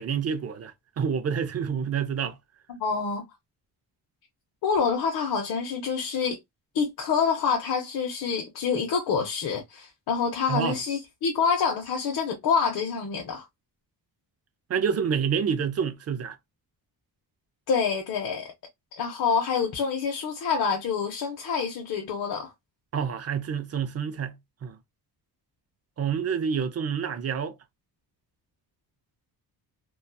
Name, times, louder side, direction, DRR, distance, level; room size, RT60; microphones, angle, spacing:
voice 1, 0.0-2.4 10.5-10.8 14.7-16.4 22.9-24.4 24.6-24.8 26.0-27.6, right 7 dB, 40° right, 0.4 m, -28 dB
voice 2, 2.8-3.3 4.6-6.4 6.7-13.5 17.7-18.5 18.9-22.5, left 6 dB, 65° left, 0.7 m, -27 dB
2.6 x 2.3 x 2.2 m
cardioid pair, 120°, 39 cm